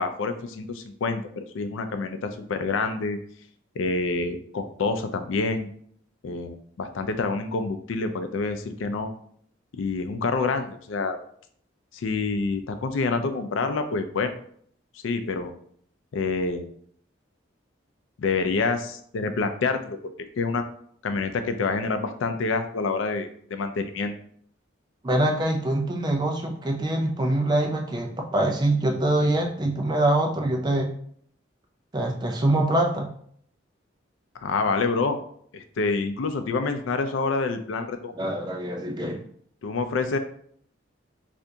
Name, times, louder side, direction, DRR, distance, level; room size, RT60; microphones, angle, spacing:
voice 1, 0.0-3.2 3.8-5.7 6.2-9.1 9.8-11.2 11.9-14.3 15.0-15.5 16.1-16.7 18.2-20.0 20.4-20.6 21.0-24.1 34.4-35.2 35.5-38.1 39.6-40.2, left 4 dB, 85° left, 8 dB, 0.4 m, -27 dB
voice 2, 25.0-30.9 31.9-33.1 38.2-39.2, right 1 dB, 20° right, 2 dB, 0.4 m, -24 dB
2.7 x 2.5 x 3.4 m, 0.62 s
head